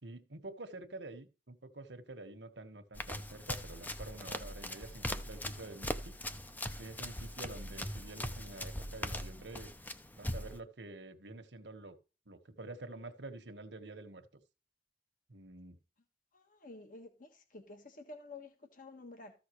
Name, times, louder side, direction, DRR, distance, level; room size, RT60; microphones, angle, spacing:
voice 1, 0.0-6.2 6.8-9.7 10.2-12.0 12.3-14.3 15.3-15.8, right 2 dB, 80° right, 1.5 m, -48 dB
Run, 3.0-10.6, left 1 dB, 10° left, 0.7 m, -41 dB
voice 2, 16.3-19.3, left 2 dB, 50° left, 1.6 m, -51 dB
14.0 x 6.4 x 3.1 m
head